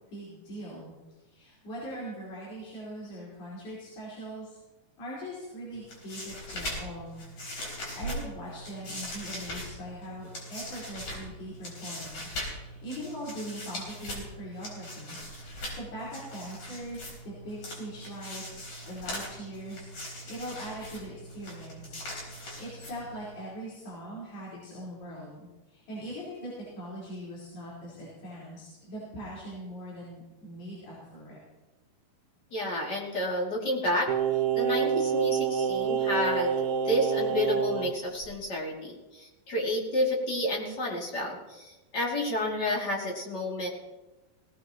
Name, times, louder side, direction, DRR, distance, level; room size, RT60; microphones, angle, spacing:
voice 1, 0.1-0.9 1.2-4.6 5.0-7.2 7.5-15.2 15.5-22.0 22.3-31.4, equal, 75° left, -8 dB, 6.2 m, -41 dB
sound 1, 5.7-23.3, equal, 50° left, 5.7 m, -40 dB
voice 2, 32.5-34.1 34.5-43.7, left 1 dB, 30° left, -2 dB, 2.6 m, -30 dB
Singing, 34.1-37.9 38.2-38.4, right 7 dB, 75° right, 2.4 m, -27 dB
20.0 x 17.5 x 3.0 m, 1.1 s
omnidirectional pair, 4.5 m